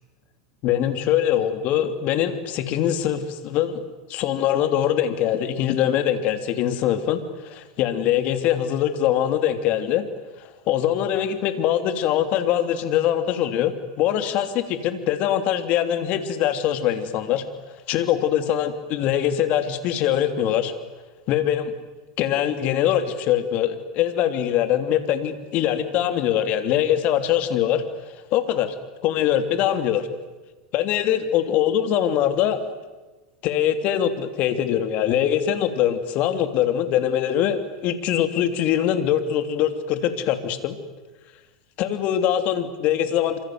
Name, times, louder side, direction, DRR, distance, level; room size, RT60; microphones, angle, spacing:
voice 1, 0.6-3.8 4.1-10.0 10.4-17.4 17.9-20.7 21.3-21.7 22.2-27.8 28.3-28.7 29.0-30.1 30.7-32.6 33.4-40.8 41.8-43.4, left 10 dB, 50° left, 8 dB, 3.3 m, -23 dB
28.0 x 26.0 x 8.0 m, 1.2 s
hypercardioid pair, 95°, 3 cm